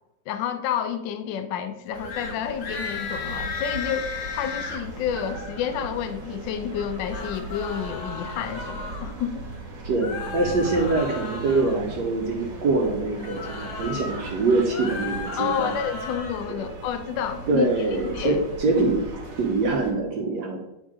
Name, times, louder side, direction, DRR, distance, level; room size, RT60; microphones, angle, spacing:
voice 1, 0.3-9.4 15.4-17.7 18.1-18.4 18.8-18.9, left 8 dB, 85° left, 9 dB, 1.3 m, -30 dB
sound 1, 1.9-19.9, right 2 dB, 50° right, 1.8 m, -38 dB
sound 2, 2.0-2.3 2.6-4.8 6.9-9.0 10.0-11.8 13.2-14.2 14.6-16.5, left 4 dB, 50° left, 1.1 m, -35 dB
voice 2, 9.8-15.7 16.5-16.6 17.5-19.0 19.4-20.6, right 3 dB, 70° right, 0 dB, 1.4 m, -24 dB
8.1 x 3.7 x 4.8 m, 0.89 s
omnidirectional pair, 2.0 m